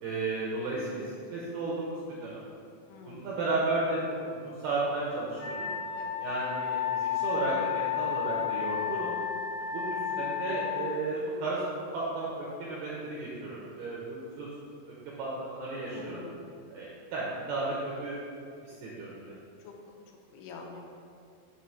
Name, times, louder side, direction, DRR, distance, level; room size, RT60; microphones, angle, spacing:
voice 1, 0.0-1.0 1.3-2.4 3.0-4.0 4.3-5.7 6.2-9.1 9.6-11.6 11.9-14.5 15.2-16.2 16.7-17.8 18.0-18.2 18.6-19.4, right 3 dB, 85° right, -6 dB, 2.3 m, -33 dB
voice 2, 2.9-3.2 6.0-6.2 15.9-16.4 19.6-19.7 20.3-20.8, left 4 dB, 85° left, 1 dB, 3.0 m, -45 dB
Wind instrument woodwind instrument, 5.4-10.9, left 9 dB, 70° left, 2.4 m, -32 dB
7.6 x 3.1 x 5.7 m, 2.4 s
omnidirectional pair, 5.6 m